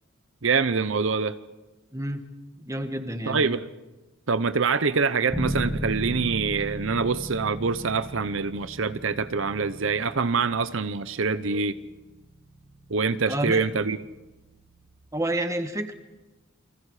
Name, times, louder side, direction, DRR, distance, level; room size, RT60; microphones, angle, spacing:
voice 1, 0.4-1.3 3.3-3.7 4.3-11.7 12.9-14.0, right 4 dB, 65° right, 12 dB, 0.7 m, -25 dB
voice 2, 1.9-2.2 2.6-3.5 13.3-13.6 15.1-15.9, right 1 dB, 15° right, 6 dB, 1.6 m, -29 dB
Bass guitar, 5.3-15.1, equal, 15° left, 1.5 m, -37 dB
29.5 x 24.0 x 4.9 m, 1.1 s
head